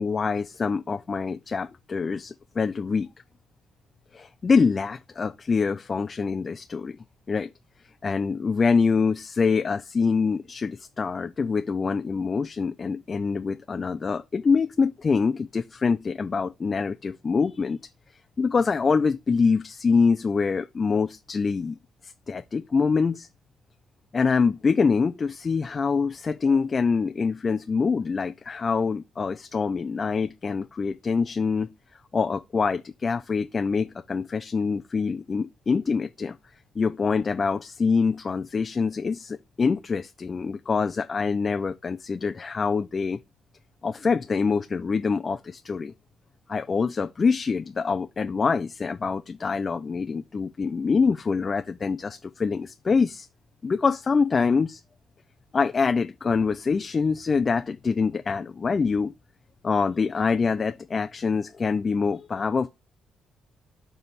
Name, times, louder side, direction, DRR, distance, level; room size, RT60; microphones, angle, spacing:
voice 1, 0.0-3.1 4.1-7.0 7.3-7.5 8.0-17.8 18.4-21.8 22.0-23.3 24.1-31.7 32.1-36.4 36.8-43.2 43.8-45.9 46.5-53.3 53.6-54.8 55.5-59.1 59.6-62.7, left 5 dB, 35° left, 0.4 m, -25 dB
6.8 x 3.4 x 5.9 m
cardioid pair, 90°, 0 cm